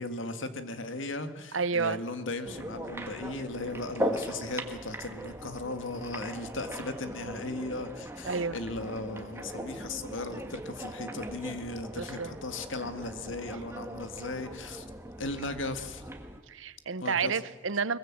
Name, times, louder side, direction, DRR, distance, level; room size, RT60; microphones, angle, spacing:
voice 1, 0.0-14.8 15.2-16.0 17.0-17.4, left 2 dB, 80° left, 9 dB, 1.8 m, -37 dB
voice 2, 1.5-2.0 8.2-8.6 12.0-12.3 16.5-18.0, right 5 dB, 85° right, 16 dB, 0.8 m, -30 dB
sound 1, 2.4-16.4, equal, 10° right, 1.6 m, -39 dB
22.5 x 21.5 x 7.5 m, 1.2 s
head